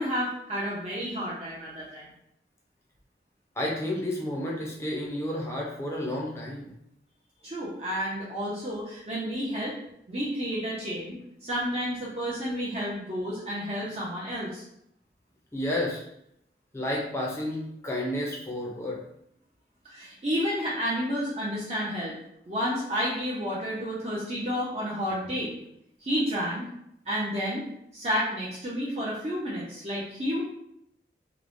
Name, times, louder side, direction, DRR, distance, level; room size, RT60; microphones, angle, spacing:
voice 1, 0.0-2.1 7.4-9.8 10.1-14.6 19.8-22.2 22.5-25.5 26.0-26.7 27.1-27.6 27.9-30.4, equal, 35° right, -7 dB, 0.5 m, -31 dB
voice 2, 3.6-6.7 15.5-16.0 16.7-19.0, left 1 dB, 15° left, -2 dB, 0.5 m, -31 dB
3.0 x 2.0 x 2.5 m, 0.77 s
head